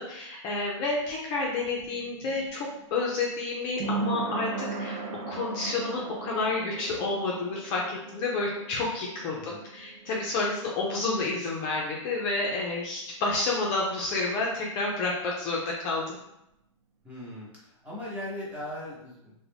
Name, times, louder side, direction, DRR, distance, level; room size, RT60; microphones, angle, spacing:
voice 1, 0.0-5.0 5.3-16.0, left 3 dB, 35° left, -3 dB, 0.5 m, -30 dB
sound 1, 0.7-12.2 12.5-12.6, right 4 dB, 30° right, 0.4 m, -38 dB
voice 2, 9.3-9.6 17.0-19.3, left 1 dB, 10° right, -7 dB, 0.9 m, -39 dB
2.4 x 2.1 x 3.2 m, 0.84 s
hypercardioid pair, 135°, 16 cm